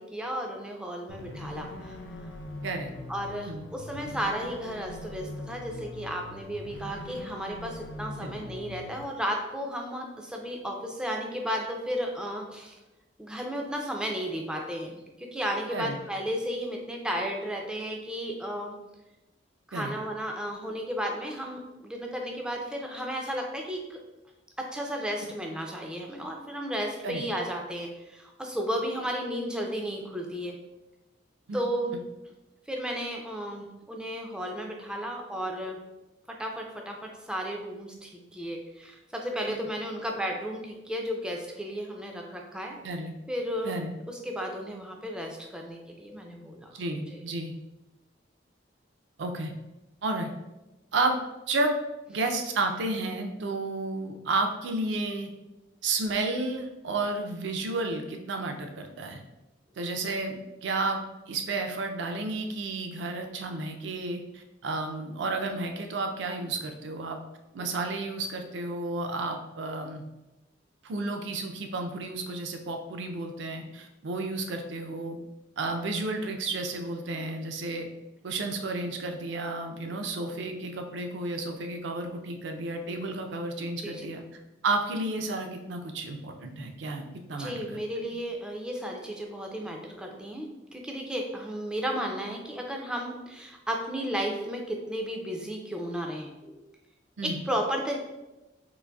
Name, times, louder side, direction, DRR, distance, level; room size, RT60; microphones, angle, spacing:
voice 1, 0.0-2.0 3.1-12.8 13.2-18.7 19.7-24.0 24.6-30.5 31.5-31.9 32.7-35.8 36.4-42.8 43.3-43.8 44.1-46.7 47.1-47.2 83.8-84.1 87.4-96.6 97.2-98.0, equal, 5° right, 1 dB, 0.4 m, -34 dB
sound 1, 1.1-9.0, left 2 dB, 70° left, 0.4 m, -42 dB
voice 2, 46.7-47.5 49.2-49.5 50.0-50.3 50.9-51.2 51.5-51.7 52.1-55.3 55.8-59.2 59.8-67.2 67.5-70.0 70.8-75.2 75.6-77.9 78.2-87.8 97.2-97.4, right 2 dB, 65° right, 4 dB, 0.4 m, -32 dB
3.8 x 2.5 x 2.3 m, 1.0 s
head